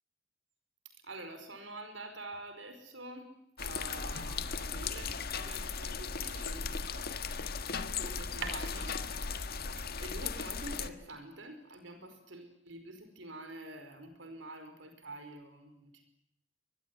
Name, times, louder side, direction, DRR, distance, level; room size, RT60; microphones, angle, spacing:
voice 1, 1.0-7.1 8.0-9.1 9.5-16.0, right 2 dB, 70° right, 8 dB, 4.9 m, -46 dB
sound 1, 3.6-10.9, left 5 dB, 55° left, 1.5 m, -37 dB
24.0 x 21.5 x 9.6 m, 0.75 s
head